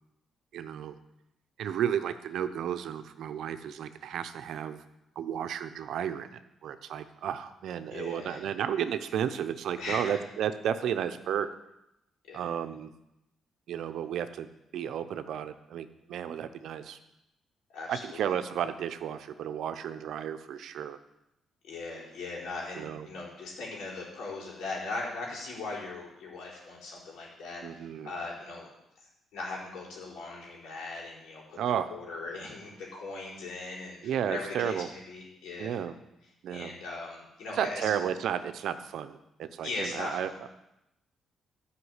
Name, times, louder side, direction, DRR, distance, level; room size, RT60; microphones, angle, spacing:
voice 1, 0.5-1.0 1.6-4.8 5.2-11.5 12.3-12.9 13.7-17.0 17.9-21.0 22.8-23.1 27.6-28.1 31.6-31.9 34.0-34.9 35.6-35.9 36.4-36.7 37.5-40.5, right 9 dB, 75° right, 10 dB, 0.8 m, -33 dB
voice 2, 7.9-8.4 9.8-10.2 12.2-12.4 17.7-18.2 21.6-28.7 29.3-31.6 31.9-35.8 36.5-37.9 39.6-40.4, left 3 dB, 80° left, -3 dB, 4.6 m, -39 dB
12.5 x 5.9 x 8.2 m, 0.87 s
cardioid pair, 90°, 0 cm